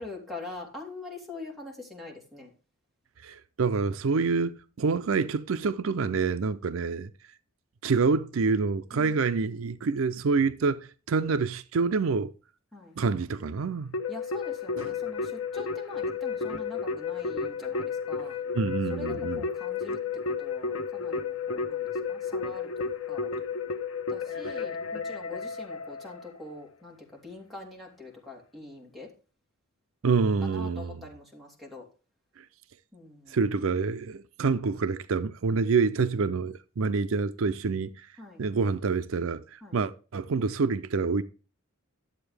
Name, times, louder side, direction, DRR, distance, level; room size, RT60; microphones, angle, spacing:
voice 1, 0.0-2.5 8.9-9.7 12.7-13.0 14.1-18.4 18.9-20.0 20.3-23.3 24.1-29.1 30.4-31.8 32.9-33.4 38.2-38.4 39.6-39.8, left 2 dB, ahead, 2.8 m, -44 dB
voice 2, 3.2-4.5 4.8-7.1 7.8-12.3 13.0-13.9 14.8-14.9 18.5-19.4 24.4-24.5 30.0-31.0 32.4-32.5 33.3-38.1 38.4-41.2, right 4 dB, 70° right, 0.5 m, -27 dB
Keyboard (musical), 13.9-26.4, left 5 dB, 90° left, 0.9 m, -32 dB
11.0 x 7.9 x 3.3 m
head